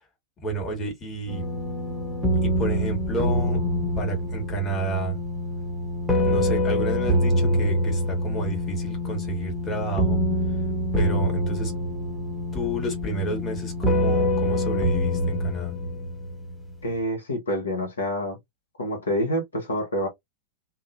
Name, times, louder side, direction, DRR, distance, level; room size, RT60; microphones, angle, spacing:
voice 1, 0.4-1.4 2.4-3.6 4.0-5.2 6.2-10.2 10.9-11.7 12.5-15.7, right 3 dB, 25° left, 1.5 m, -30 dB
sound 1, 1.3-16.7, left 1 dB, ahead, 1.0 m, -25 dB
voice 2, 16.8-18.4 18.8-20.1, equal, 70° left, 1.2 m, -27 dB
2.7 x 2.4 x 2.6 m
figure-of-eight pair, 90°, 0 cm